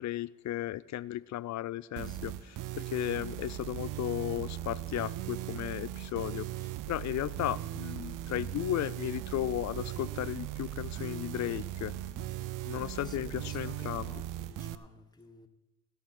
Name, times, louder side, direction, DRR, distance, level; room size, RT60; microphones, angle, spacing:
voice 1, 0.0-6.5 6.9-11.9 12.6-14.1, left 14 dB, 60° left, 20 dB, 0.5 m, -35 dB
sound 1, 2.0-14.8, right 13 dB, 75° right, 0.6 m, -38 dB
voice 2, 2.1-2.5 6.1-6.7 11.8-12.4 12.9-15.5, left 1 dB, 10° left, 6 dB, 1.6 m, -56 dB
sound 2, 7.9-8.1 8.4-8.6 9.0-9.2 9.6-9.8 10.2-10.4 10.9-11.0 11.5-11.7 12.0-12.3 12.8-13.0 13.4-13.7 14.0-14.1, left 7 dB, 85° left, 1.5 m, -60 dB
17.0 x 5.7 x 5.9 m, 1.0 s
supercardioid pair, 60°, 32 cm